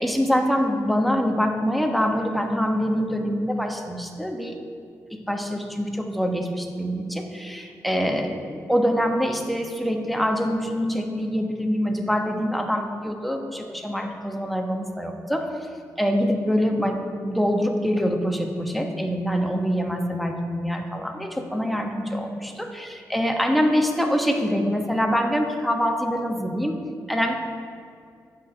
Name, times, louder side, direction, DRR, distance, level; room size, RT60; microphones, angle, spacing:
voice 1, 0.0-4.6 5.1-15.5 16.0-26.8 27.1-27.4, equal, ahead, 3 dB, 1.2 m, -25 dB
15.0 x 5.9 x 3.3 m, 2.3 s
cardioid pair, 60°, 7 cm